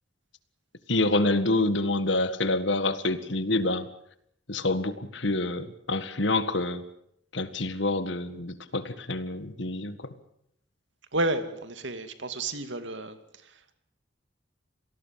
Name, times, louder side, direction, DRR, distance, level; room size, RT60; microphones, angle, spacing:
voice 1, 0.9-3.9 4.5-6.8 7.3-10.1, left 2 dB, 65° left, 12 dB, 1.8 m, -27 dB
voice 2, 11.1-13.7, right 2 dB, 70° right, 9 dB, 2.4 m, -31 dB
26.5 x 19.0 x 7.6 m, 0.73 s
head